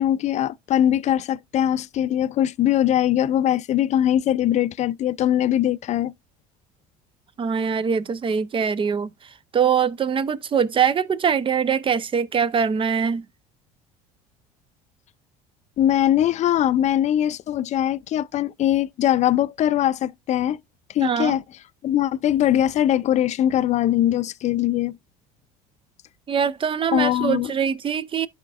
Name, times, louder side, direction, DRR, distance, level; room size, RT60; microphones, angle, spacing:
voice 1, 0.0-6.1 15.8-20.6 20.9-21.4 21.8-25.0 26.9-27.5, left 11 dB, 40° left, 0.4 m, -21 dB
voice 2, 7.4-9.1 9.5-13.2 21.0-21.4 26.3-28.3, right 7 dB, 30° right, 0.5 m, -23 dB
12.0 x 4.2 x 2.4 m
hypercardioid pair, 75°, 18 cm